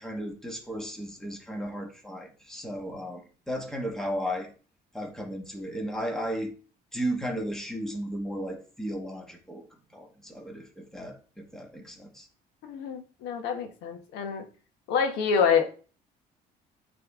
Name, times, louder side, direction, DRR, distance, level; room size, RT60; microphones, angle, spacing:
voice 1, 0.0-4.5 4.9-6.5 6.9-9.6 9.9-12.3, equal, 5° left, 2 dB, 1.5 m, -35 dB
voice 2, 12.6-14.4 14.9-15.6, left 6 dB, 85° left, 4 dB, 1.3 m, -26 dB
8.8 x 3.4 x 3.7 m, 0.37 s
cardioid pair, 110°, 17 cm